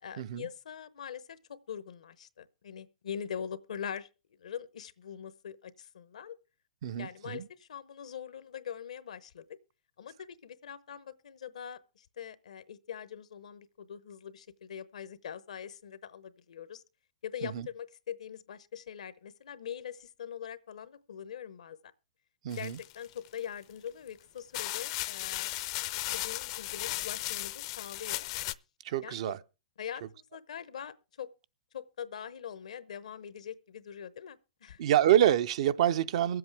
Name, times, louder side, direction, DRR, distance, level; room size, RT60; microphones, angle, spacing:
voice 1, 0.0-4.1 4.4-6.4 7.0-9.6 10.0-16.8 17.2-21.8 22.5-25.6 26.1-28.3 29.0-29.4 29.8-31.3 31.7-34.8, left 8 dB, 75° left, 0.9 m, -43 dB
voice 2, 6.8-7.5 17.5-17.7 22.4-22.8 28.8-29.4 34.8-36.4, right 11 dB, 60° right, 0.6 m, -26 dB
sound 1, 22.5-23.4 24.1-24.2 24.5-28.5, left 17 dB, 45° left, 0.5 m, -36 dB
23.0 x 7.9 x 3.4 m
hypercardioid pair, 130°, 4 cm